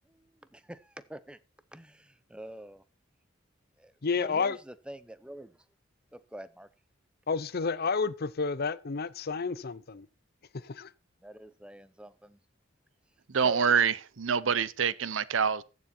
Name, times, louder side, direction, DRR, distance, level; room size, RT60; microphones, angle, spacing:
voice 1, 0.1-1.4 1.7-2.8 3.8-3.9 4.2-5.6 6.1-6.7 11.2-12.4 13.4-13.8, right 1 dB, 5° right, 0.6 m, -46 dB
voice 2, 4.0-4.6 7.3-10.1 10.5-10.9, left 5 dB, 50° left, 0.6 m, -30 dB
voice 3, 13.3-15.6, right 6 dB, 70° right, 0.7 m, -26 dB
15.0 x 7.2 x 4.3 m
head